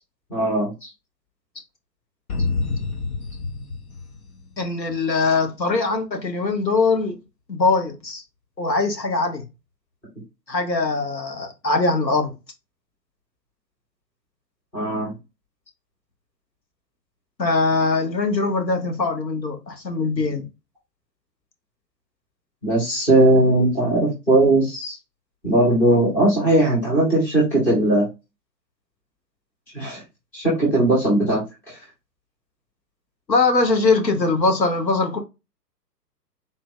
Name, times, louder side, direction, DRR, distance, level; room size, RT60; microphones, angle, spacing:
voice 1, 0.3-0.9 14.7-15.1 22.6-25.0 25.4-28.1 29.7-30.0 30.3-31.4, right 1 dB, 5° left, 0.6 m, -19 dB
sound 1, 2.3-5.0, left 4 dB, 60° left, 1.3 m, -28 dB
voice 2, 4.6-7.2 7.5-8.2 8.6-9.5 10.5-12.3 17.4-20.4 33.3-35.2, left 3 dB, 80° left, 1.3 m, -21 dB
3.9 x 2.5 x 3.6 m
figure-of-eight pair, 120°, 50 cm